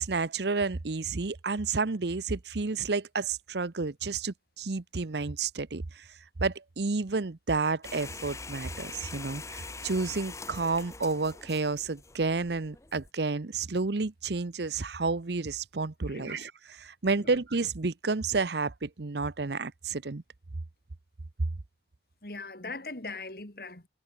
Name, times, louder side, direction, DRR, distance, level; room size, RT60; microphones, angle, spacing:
voice 1, 0.0-6.0 6.4-20.2, right 4 dB, 75° right, 0.8 m, -31 dB
sound 1, 7.8-13.1, left 3 dB, 15° left, 1.3 m, -43 dB
voice 2, 16.0-16.5 17.2-17.4 22.2-23.9, left 3 dB, 55° left, 3.1 m, -41 dB
head